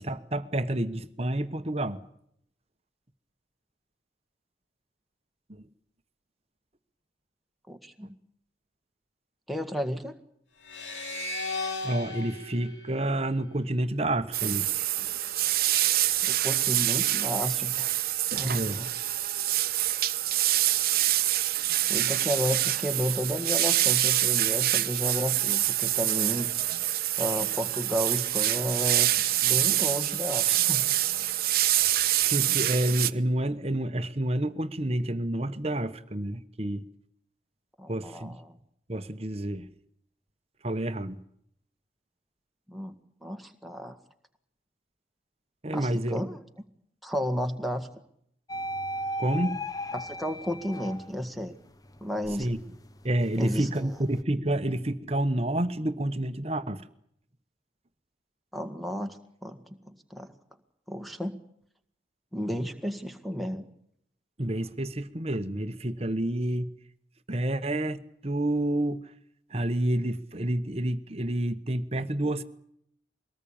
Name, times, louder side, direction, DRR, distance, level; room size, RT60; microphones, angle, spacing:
voice 1, 0.0-2.0 5.5-5.7 8.0-8.1 11.8-14.7 15.0-15.1 18.4-18.8 32.2-36.8 37.9-38.4 38.9-39.7 40.6-41.2 45.6-46.2 49.2-49.6 52.4-52.6 53.0-56.9 64.4-66.7 67.3-69.1 69.5-72.4, right 1 dB, 35° right, 10 dB, 1.1 m, -29 dB
voice 2, 7.7-8.2 9.5-10.2 16.2-17.9 18.3-18.9 21.9-26.5 27.2-29.1 29.4-30.8 37.8-38.6 42.7-44.0 45.7-46.4 47.0-47.9 49.9-51.6 52.0-52.5 53.4-53.9 58.5-60.3 60.9-61.4 62.3-63.7, equal, ahead, 5 dB, 1.8 m, -32 dB
sound 1, 10.6-13.9, left 2 dB, 85° left, 4.3 m, -36 dB
sound 2, 14.3-33.1, right 14 dB, 55° right, 0.9 m, -26 dB
sound 3, 48.5-51.4 51.8-54.2, equal, 20° left, 0.8 m, -37 dB
23.0 x 19.0 x 8.8 m, 0.71 s
head